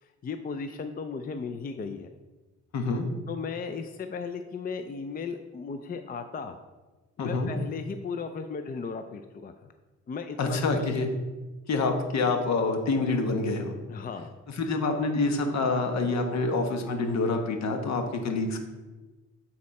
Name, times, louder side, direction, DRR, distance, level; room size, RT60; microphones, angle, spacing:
voice 1, 0.0-2.1 3.3-6.5 7.2-9.7 10.1-10.6 13.9-14.4, left 5 dB, 30° left, 8 dB, 0.5 m, -36 dB
voice 2, 2.7-3.1 7.2-7.5 10.4-11.1 11.7-13.7 14.6-18.6, left 3 dB, 65° left, 5 dB, 1.2 m, -27 dB
8.4 x 4.3 x 4.2 m, 1.2 s
cardioid pair, 90°, 30 cm